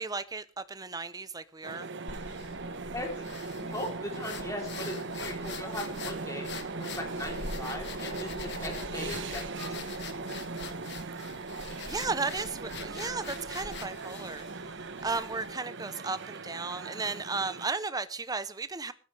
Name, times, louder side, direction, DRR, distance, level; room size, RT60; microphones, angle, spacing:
voice 1, 0.0-1.9 11.8-14.4 15.0-18.9, right 4 dB, 20° right, 0.7 m, -34 dB
sound 1, 1.6-17.7, right 3 dB, 60° right, 1.1 m, -39 dB
sound 2, 2.1-15.5, left 5 dB, 55° left, 1.5 m, -44 dB
voice 2, 2.9-6.5 6.8-9.8, left 1 dB, 15° left, 3.5 m, -39 dB
19.0 x 13.0 x 3.4 m
head